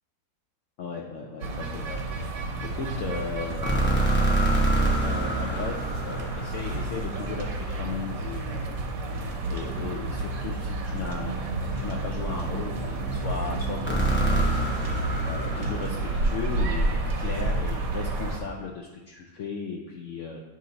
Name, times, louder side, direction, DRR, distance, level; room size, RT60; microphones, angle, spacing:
voice 1, 0.8-4.0 4.7-8.8 9.5-15.0 15.2-20.4, left 5 dB, 70° left, 0 dB, 0.7 m, -36 dB
Day Park Ambience, 1.4-18.4, right 2 dB, 85° right, 1.4 m, -30 dB
sound 1, 3.6-7.7 13.9-17.0, right 2 dB, 15° left, 0.4 m, -26 dB
8.4 x 3.1 x 3.9 m, 1.1 s
omnidirectional pair, 1.8 m